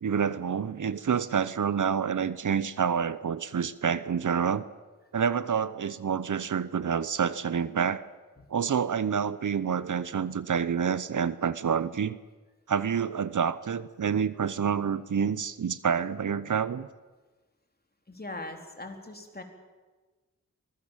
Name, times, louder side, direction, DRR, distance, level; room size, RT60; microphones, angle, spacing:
voice 1, 0.0-4.6 5.1-8.0 8.5-12.2 12.7-16.9, right 7 dB, 70° right, 16 dB, 0.9 m, -28 dB
voice 2, 18.1-19.4, left 2 dB, 30° left, 4 dB, 3.8 m, -40 dB
24.0 x 20.0 x 7.4 m, 1.3 s
wide cardioid pair, 75°, 32 cm